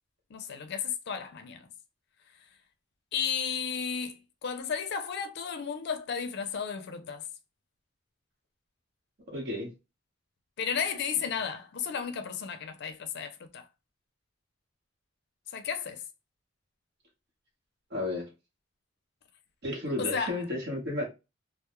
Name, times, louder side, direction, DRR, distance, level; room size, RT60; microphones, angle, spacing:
voice 1, 0.3-1.7 3.1-7.3 10.6-13.7 15.5-16.0 20.0-20.4, left 7 dB, 55° left, 0.4 m, -33 dB
voice 2, 9.3-9.7 17.9-18.3 19.6-21.1, left 1 dB, 55° right, 0.9 m, -32 dB
2.2 x 2.0 x 2.9 m
head